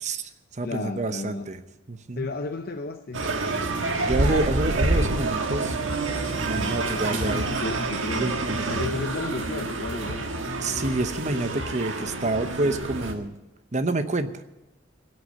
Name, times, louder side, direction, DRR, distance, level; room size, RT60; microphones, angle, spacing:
voice 1, 0.0-1.6 1.9-2.3 3.6-3.7 4.0-5.8 6.3-7.5 8.1-8.6 10.6-13.3 13.7-14.5, right 2 dB, 35° right, 10 dB, 0.8 m, -28 dB
voice 2, 0.6-1.5 2.2-3.3 6.5-8.4 8.7-10.4, left 3 dB, 50° left, 6 dB, 0.6 m, -33 dB
sound 1, 3.1-13.1, right 2 dB, 85° right, 1.5 m, -27 dB
17.0 x 6.5 x 8.5 m, 1.0 s
head